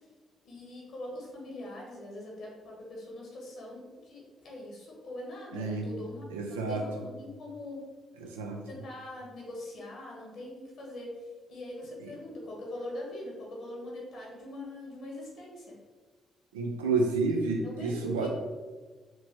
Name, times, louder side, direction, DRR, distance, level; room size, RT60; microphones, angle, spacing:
voice 1, 0.4-7.9 8.2-8.3 8.7-15.7 17.3-17.4 17.6-18.3, left 1 dB, 55° left, -2 dB, 1.2 m, -42 dB
voice 2, 5.5-5.9 6.3-6.8 8.2-8.6 16.5-18.3, right 3 dB, 75° right, 2 dB, 0.4 m, -30 dB
4.3 x 3.1 x 3.0 m, 1.3 s
figure-of-eight pair, 40°, 0 cm